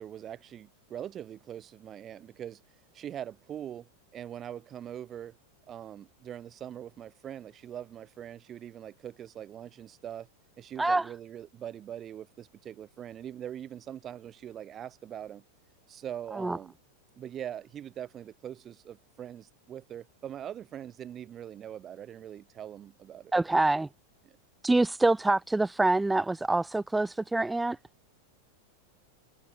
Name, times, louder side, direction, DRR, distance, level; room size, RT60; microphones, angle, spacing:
voice 1, 0.0-2.6 2.9-5.4 5.7-10.3 10.6-15.4 15.9-16.7 17.2-23.6 24.2-24.4, right 10 dB, 25° right, 1.4 m, -42 dB
voice 2, 10.8-11.1 16.3-16.6 23.3-23.9 24.6-27.8, right 2 dB, 5° right, 0.6 m, -26 dB
figure-of-eight pair, 90°, 0 cm